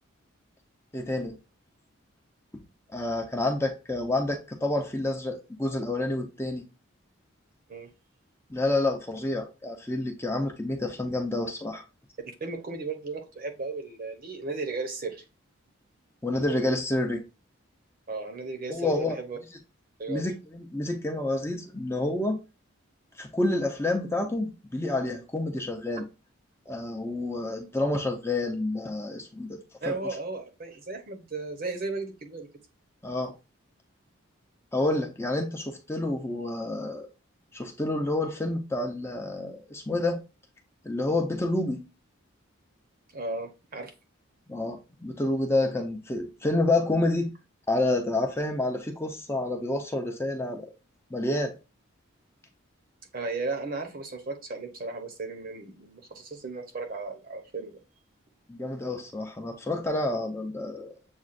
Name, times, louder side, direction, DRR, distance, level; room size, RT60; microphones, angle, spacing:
voice 1, 0.9-1.4 2.5-2.6 2.9-6.6 8.5-11.8 16.2-17.2 18.7-19.2 20.1-22.4 23.2-26.1 26.7-29.6 29.9-30.0 33.0-33.3 34.7-37.1 37.5-40.2 40.9-41.9 44.5-47.3 47.7-50.7 51.1-51.5 58.5-60.9, left 2 dB, 10° left, 0.6 m, -29 dB
voice 2, 12.4-15.2 18.1-19.4 20.0-20.3 29.8-32.5 43.1-43.9 53.1-57.7, right 3 dB, 45° right, 0.9 m, -35 dB
7.2 x 2.4 x 2.5 m
head